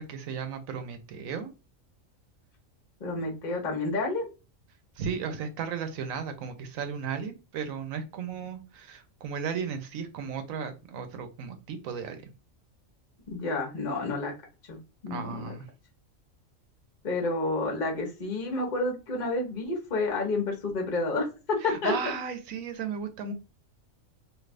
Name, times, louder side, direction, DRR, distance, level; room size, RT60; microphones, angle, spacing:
voice 1, 0.0-1.5 5.0-12.3 15.1-15.7 21.6-23.3, right 6 dB, 90° right, 8 dB, 1.1 m, -35 dB
voice 2, 3.0-4.3 13.3-14.3 14.7-14.8 15.0-15.5 17.0-22.1, left 2 dB, 40° left, 1 dB, 0.9 m, -30 dB
3.2 x 2.7 x 2.4 m, 0.30 s
omnidirectional pair, 1.4 m